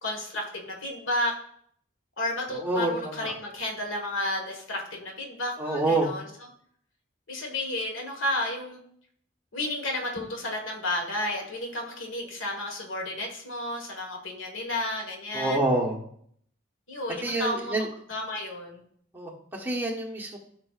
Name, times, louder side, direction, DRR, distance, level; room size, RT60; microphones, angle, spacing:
voice 1, 0.0-1.3 2.2-6.3 7.3-8.8 9.5-15.6 16.9-17.7 18.1-18.8, left 1 dB, 90° left, 1 dB, 1.6 m, -32 dB
voice 2, 2.5-3.3 5.6-6.1 15.3-16.0 17.2-17.9 19.1-20.4, right 2 dB, 10° right, -3 dB, 1.2 m, -27 dB
13.0 x 5.6 x 2.5 m, 0.64 s
head